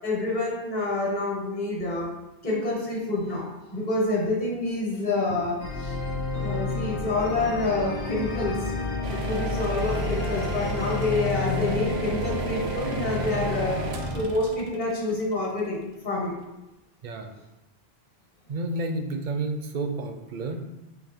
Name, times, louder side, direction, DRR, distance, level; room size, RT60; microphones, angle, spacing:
voice 1, 0.0-2.1 2.4-5.9 6.4-8.6 9.1-13.8 14.1-15.8 16.0-16.4, left 2 dB, 45° left, -3 dB, 1.4 m, -27 dB
sound 1, 5.6-14.2, left 3 dB, 85° left, 1.0 m, -30 dB
sound 2, 9.0-15.9, right 6 dB, 85° right, 0.8 m, -34 dB
voice 2, 18.5-20.6, right 2 dB, 60° right, 6 dB, 0.6 m, -30 dB
4.0 x 2.8 x 4.3 m, 1.0 s
omnidirectional pair, 1.0 m